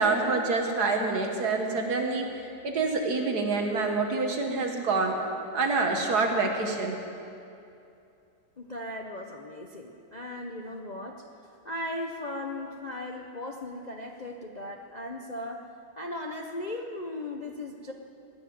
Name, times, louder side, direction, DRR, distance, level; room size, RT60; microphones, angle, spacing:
voice 1, 0.0-2.3 2.6-5.2 5.5-7.0, right 3 dB, 55° right, 2 dB, 1.8 m, -26 dB
voice 2, 8.6-11.3 11.6-15.7 16.0-17.9, left 1 dB, 70° left, 1 dB, 0.4 m, -37 dB
18.5 x 7.2 x 9.4 m, 2.7 s
omnidirectional pair, 2.1 m